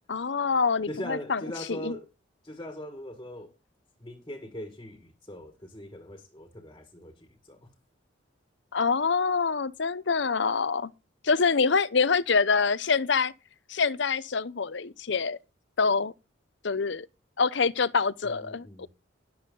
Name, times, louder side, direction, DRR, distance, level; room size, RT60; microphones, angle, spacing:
voice 1, 0.1-1.4 1.7-1.9 8.7-10.9 11.2-13.3 13.7-15.4 15.8-16.1 16.6-17.1 17.4-18.9, left 5 dB, 60° left, 0.7 m, -25 dB
voice 2, 0.9-2.1 2.4-3.5 4.0-7.7 18.2-18.9, equal, 20° left, 1.7 m, -41 dB
12.0 x 11.5 x 3.9 m
head